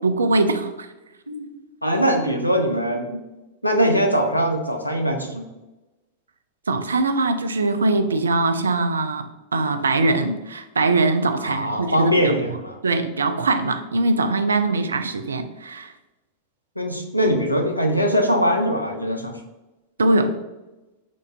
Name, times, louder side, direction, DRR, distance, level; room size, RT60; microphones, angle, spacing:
voice 1, 0.0-0.9 6.7-9.3 9.5-12.3 12.8-15.9 20.0-20.4, right 2 dB, 75° right, 9 dB, 0.3 m, -22 dB
voice 2, 1.8-3.2 3.6-5.5 11.4-12.8 16.8-19.3, equal, 90° left, 3 dB, 0.5 m, -21 dB
5.1 x 2.5 x 3.2 m, 1.1 s
figure-of-eight pair, 90°, 0 cm